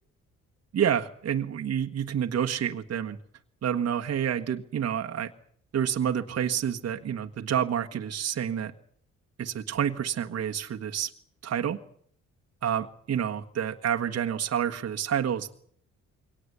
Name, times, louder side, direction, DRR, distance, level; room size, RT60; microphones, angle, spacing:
voice 1, 0.7-3.2 3.6-5.3 5.7-8.7 9.4-11.1 11.4-11.8 12.6-15.5, right 9 dB, 55° right, 4 dB, 1.5 m, -28 dB
23.0 x 18.0 x 8.2 m, 0.63 s
cardioid pair, 90°, 30 cm